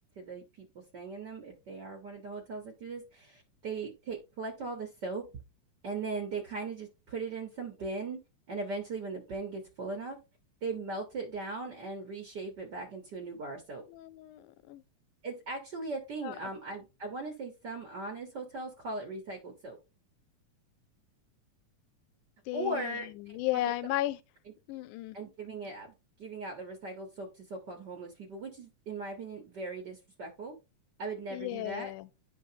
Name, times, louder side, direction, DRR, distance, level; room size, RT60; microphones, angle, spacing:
voice 1, 0.2-5.2 5.8-8.2 8.5-10.2 10.6-13.8 15.2-19.8 22.5-23.1 23.5-23.7 25.1-30.5 31.0-31.9, right 3 dB, 85° right, 0.9 m, -39 dB
voice 2, 13.9-14.8 16.2-16.4 22.5-24.2 24.7-25.2 31.3-32.1, left 15 dB, 85° left, 2.1 m, -35 dB
10.0 x 4.6 x 2.7 m
omnidirectional pair, 3.5 m